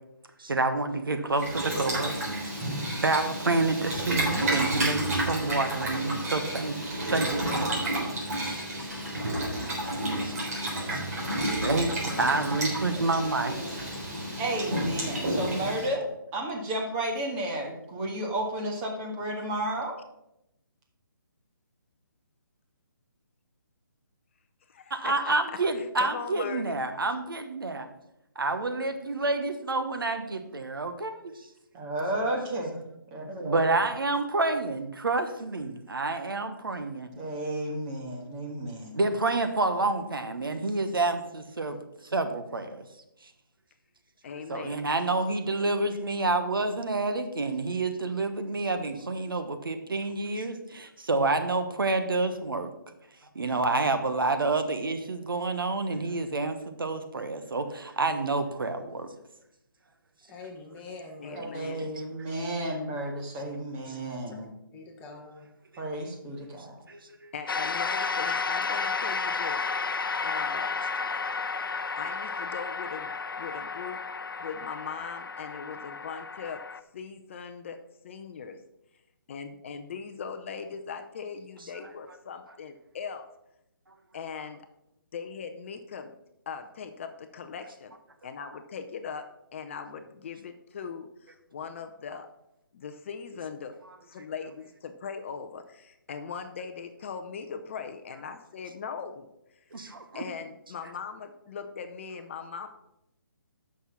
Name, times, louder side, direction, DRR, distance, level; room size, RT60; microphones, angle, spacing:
voice 1, 0.4-2.4 3.0-6.8 7.1-8.1 8.4-8.9 9.4-9.9 10.2-13.6 24.9-27.9 28.3-31.5 33.4-37.1 38.9-41.8 42.0-42.8 43.2-43.3 44.5-52.7 53.3-59.1 63.9-64.0 66.9-67.3 83.9-84.0 99.7-100.2, right 3 dB, 80° right, 7 dB, 1.2 m, -29 dB
Boiling, 1.3-15.9, right 1 dB, 45° right, 3.6 m, -31 dB
voice 2, 12.2-12.5 15.6-15.9 24.7-26.8 44.2-44.8 61.2-61.9 67.3-69.6 70.2-70.8 72.0-74.0 74.4-76.6 76.9-77.8 78.0-78.6 79.3-83.3 84.1-84.7 85.1-86.1 86.5-87.9 88.2-89.2 89.5-92.3 92.7-93.8 94.1-99.3 100.1-102.7, left 6 dB, 35° left, 7 dB, 0.6 m, -39 dB
voice 3, 13.4-14.0 60.3-61.4 64.7-65.5, left 3 dB, 15° left, 1 dB, 1.3 m, -44 dB
voice 4, 14.4-16.0 16.3-20.0 31.7-32.8 33.1-33.6 37.1-39.0 61.3-64.5 65.8-66.7, right 1 dB, 20° right, 0 dB, 1.8 m, -32 dB
sound 1, 67.5-76.8, left 4 dB, 75° left, 0.6 m, -32 dB
7.9 x 6.2 x 5.9 m, 0.85 s
figure-of-eight pair, 155°, 12 cm